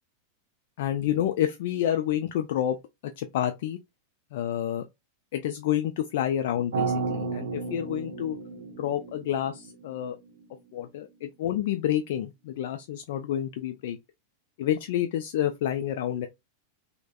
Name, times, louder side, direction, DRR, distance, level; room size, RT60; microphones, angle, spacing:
voice 1, 0.8-2.8 3.2-3.8 4.3-4.9 5.3-8.4 8.8-10.2 10.7-14.0 14.6-16.3, left 11 dB, 55° left, 0.3 m, -29 dB
sound 1, 6.7-10.9, right 4 dB, 60° right, 0.7 m, -33 dB
3.2 x 2.0 x 2.2 m
figure-of-eight pair, 90°, 0 cm